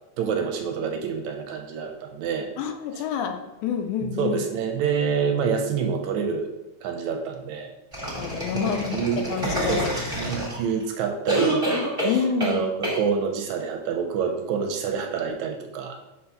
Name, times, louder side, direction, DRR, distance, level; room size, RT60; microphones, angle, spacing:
voice 1, 0.2-2.5 2.9-3.0 4.2-6.5 6.8-7.7 8.6-9.2 9.7-9.8 10.2-11.7 12.4-16.0, right 6 dB, 80° right, 3 dB, 1.9 m, -27 dB
voice 2, 2.6-4.4 8.1-9.0 9.3-9.9 12.0-12.6, left 7 dB, 80° left, 6 dB, 2.0 m, -27 dB
sound 1, 7.9-10.8 11.3-12.6 12.8-13.0, right 1 dB, 15° right, 1.3 m, -27 dB
4.4 x 4.1 x 5.7 m, 1.0 s
omnidirectional pair, 3.5 m